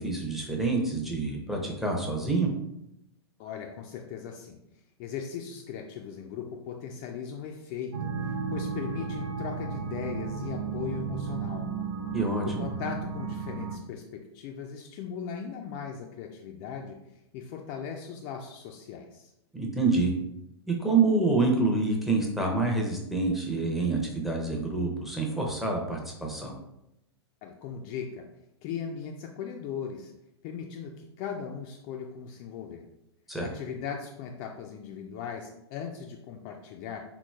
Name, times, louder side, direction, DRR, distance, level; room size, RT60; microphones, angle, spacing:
voice 1, 0.0-2.5 12.1-12.7 19.5-20.1 20.8-26.5 33.3-33.5, right 3 dB, ahead, 0 dB, 0.6 m, -27 dB
voice 2, 3.4-4.6 5.0-8.1 8.5-11.7 12.4-19.3 27.4-28.2 28.6-30.1 30.4-32.8 33.4-37.0, left 7 dB, 35° left, 2 dB, 0.3 m, -38 dB
sound 1, 7.9-13.8, right 5 dB, 75° right, 0.4 m, -33 dB
3.7 x 3.0 x 2.3 m, 0.83 s
figure-of-eight pair, 100°, 14 cm